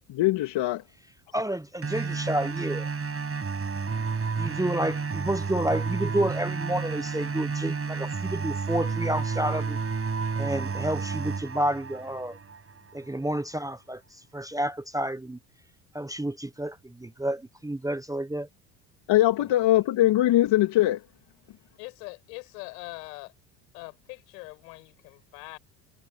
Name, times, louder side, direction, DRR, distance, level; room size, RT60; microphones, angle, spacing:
voice 1, 0.2-0.8 19.1-21.0, left 15 dB, 60° left, 3.0 m, -21 dB
voice 2, 1.3-2.9 4.4-9.8 10.4-12.4 12.9-15.4 15.9-18.5, right 1 dB, 5° right, 1.2 m, -30 dB
sound 1, 1.8-12.8, right 5 dB, 30° right, 7.8 m, -31 dB
voice 3, 21.8-23.3 23.7-25.6, left 25 dB, 80° left, 7.3 m, -42 dB
hypercardioid pair, 70°, 48 cm